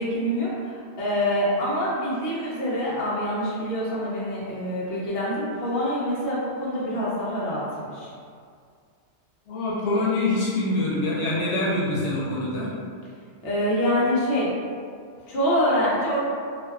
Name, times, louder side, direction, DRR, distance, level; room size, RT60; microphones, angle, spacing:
voice 1, 0.0-8.1 13.4-14.5 15.3-16.2, equal, 65° left, -7 dB, 0.8 m, -25 dB
voice 2, 9.5-12.7, left 2 dB, 90° left, -6 dB, 0.9 m, -25 dB
2.6 x 2.2 x 2.2 m, 2.2 s
omnidirectional pair, 1.2 m